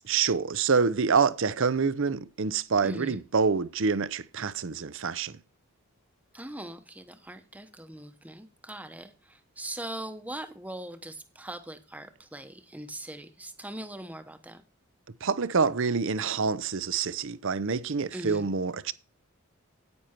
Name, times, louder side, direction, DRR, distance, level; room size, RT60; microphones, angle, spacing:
voice 1, 0.0-5.4 15.2-18.9, right 5 dB, 60° right, 0.6 m, -26 dB
voice 2, 2.8-3.2 6.3-14.6 18.1-18.5, right 1 dB, 5° right, 0.9 m, -41 dB
9.6 x 9.1 x 4.4 m
head